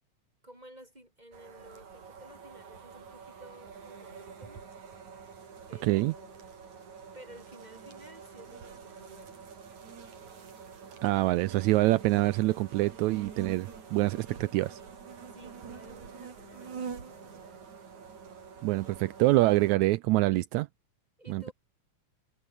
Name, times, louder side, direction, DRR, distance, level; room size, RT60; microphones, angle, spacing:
voice 1, 0.4-4.7 5.7-6.5 7.1-9.5 15.3-17.6 21.2-21.5, right 1 dB, 10° right, 6.7 m, -53 dB
sound 1, 1.3-19.8, right 6 dB, 65° right, 4.9 m, -46 dB
voice 2, 5.8-6.1 11.0-14.8 18.6-20.7 21.3-21.5, right 19 dB, 80° right, 1.7 m, -25 dB
omnidirectional pair, 3.7 m